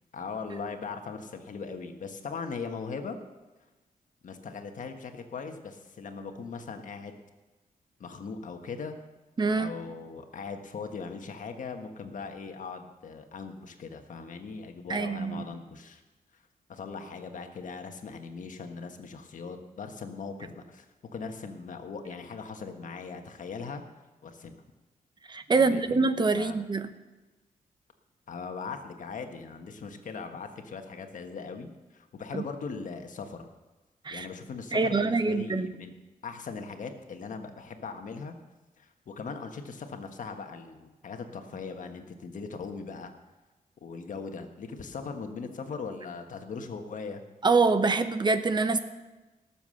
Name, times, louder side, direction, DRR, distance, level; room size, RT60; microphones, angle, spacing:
voice 1, 0.1-3.2 4.2-7.2 8.0-9.0 9.5-16.0 16.7-20.9 21.1-23.8 24.2-24.6 25.5-26.1 26.3-26.6 28.3-33.5 34.1-35.9 36.2-38.3 38.8-43.1 43.8-47.2, left 5 dB, 60° left, 6 dB, 1.4 m, -39 dB
voice 2, 9.4-9.7 14.9-15.5 25.3-26.9 32.3-32.4 34.0-34.3 34.7-35.7 47.4-48.8, right 4 dB, 30° right, 10 dB, 0.9 m, -25 dB
18.5 x 7.2 x 6.5 m, 1.1 s
cardioid pair, 115°, 15 cm